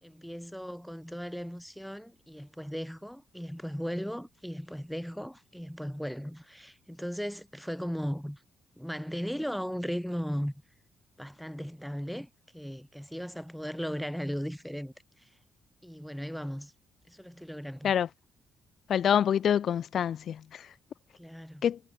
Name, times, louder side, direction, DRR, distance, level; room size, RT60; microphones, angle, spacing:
voice 1, 0.0-8.4 8.8-10.6 11.2-14.9 15.8-16.7 17.1-17.9 21.2-21.6, equal, ahead, 4.7 m, -37 dB
voice 2, 18.9-20.7 21.6-21.8, left 9 dB, 60° left, 0.7 m, -26 dB
cardioid pair, 90°, 0 cm